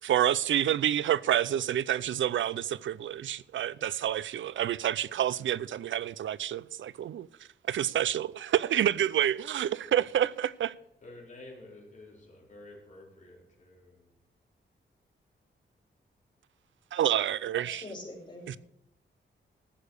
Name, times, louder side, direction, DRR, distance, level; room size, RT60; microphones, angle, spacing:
voice 1, 0.0-7.3 7.7-10.7 16.9-17.8 18.5-18.6, right 11 dB, 85° right, 0.5 m, -28 dB
voice 2, 11.0-14.1, left 2 dB, 40° left, 4.1 m, -50 dB
voice 3, 17.5-18.6, left 2 dB, 25° left, 4.4 m, -44 dB
14.0 x 6.8 x 6.5 m
wide cardioid pair, 135°, 19 cm